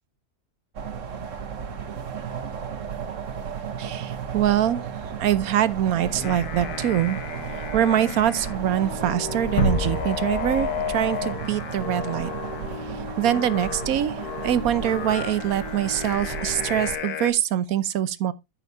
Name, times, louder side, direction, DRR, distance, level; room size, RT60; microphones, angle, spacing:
sound 1, 0.7-17.0, right 7 dB, 55° right, 1.4 m, -34 dB
voice 1, 3.8-4.8 5.2-7.2 7.7-12.3 13.2-14.1 14.4-18.3, right 11 dB, 70° right, 1.2 m, -24 dB
Singing, 6.0-17.3, left 8 dB, 85° left, 1.4 m, -34 dB
sound 2, 9.6-12.4, equal, 65° left, 2.2 m, -29 dB
14.5 x 5.8 x 2.6 m
omnidirectional pair, 1.6 m